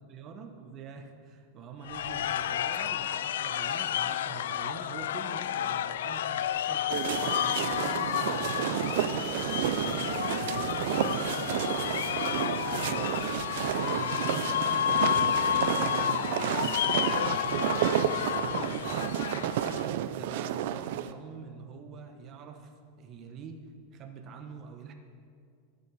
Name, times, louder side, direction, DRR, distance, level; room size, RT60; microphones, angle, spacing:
voice 1, 0.1-13.3 13.5-17.8 18.0-23.6 23.9-24.9, right 5 dB, 30° right, 5 dB, 1.2 m, -45 dB
sound 1, 1.8-19.9, left 10 dB, 90° left, 0.4 m, -31 dB
sound 2, 6.9-21.1, right 10 dB, 60° right, 0.5 m, -31 dB
20.5 x 8.1 x 4.9 m, 2.3 s
supercardioid pair, 160°, 0 cm